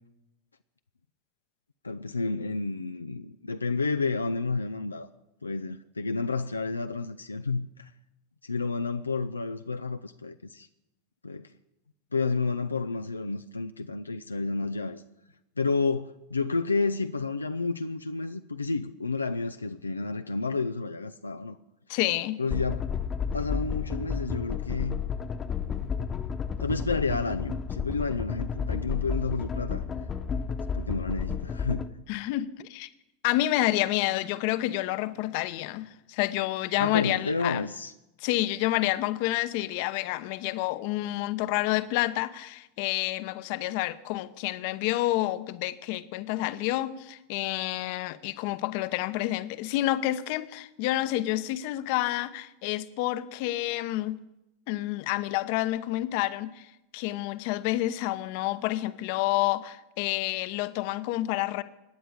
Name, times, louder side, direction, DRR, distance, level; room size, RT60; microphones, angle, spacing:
voice 1, 1.8-5.1 5.4-7.9 8.4-10.7 11.2-11.5 12.1-15.0 15.6-21.6 22.4-22.9 23.3-25.0 26.6-29.8 30.7-31.9 36.8-37.9, left 4 dB, 90° left, 0.5 m, -30 dB
voice 2, 21.9-22.4 32.1-32.9 33.2-37.7 38.2-54.2 54.7-56.7 56.9-61.6, left 16 dB, 55° left, 0.9 m, -29 dB
sound 1, 22.5-31.9, left 6 dB, 25° left, 1.1 m, -32 dB
25.5 x 10.0 x 5.0 m
figure-of-eight pair, 85°, 0 cm